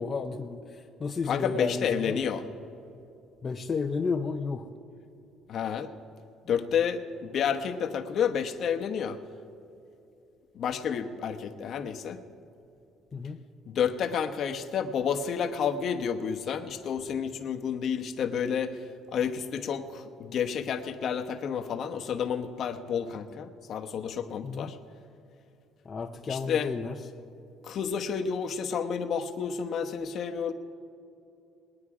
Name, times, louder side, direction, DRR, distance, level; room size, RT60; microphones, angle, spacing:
voice 1, 0.0-2.2 3.4-4.7 13.1-13.4 24.4-24.7 25.9-26.9, left 4 dB, 25° left, 2 dB, 0.6 m, -32 dB
voice 2, 1.3-2.4 5.5-5.9 6.4-9.2 10.5-12.2 13.7-18.8 19.1-24.8 26.3-26.7 27.6-30.5, left 7 dB, 50° left, 6 dB, 1.0 m, -30 dB
21.0 x 9.8 x 4.9 m, 2.7 s
cardioid pair, 130°, 0 cm